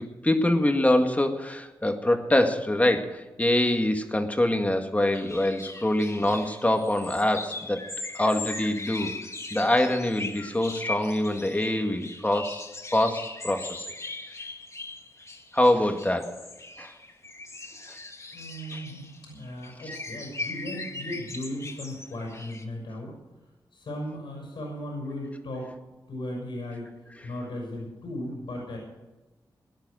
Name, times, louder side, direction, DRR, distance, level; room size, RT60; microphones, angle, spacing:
voice 1, 0.0-7.9 8.1-9.1 9.5-12.7 12.9-13.8 15.5-16.4 16.8-16.9, left 1 dB, 15° left, 5 dB, 1.9 m, -24 dB
sound 1, 5.1-22.6, left 2 dB, 35° left, 2.1 m, -39 dB
voice 2, 18.3-23.2 23.7-25.7 26.1-26.9 27.2-28.8, left 1 dB, 80° left, -2 dB, 5.7 m, -36 dB
17.5 x 10.5 x 6.4 m, 1.1 s
cardioid pair, 65°, 8 cm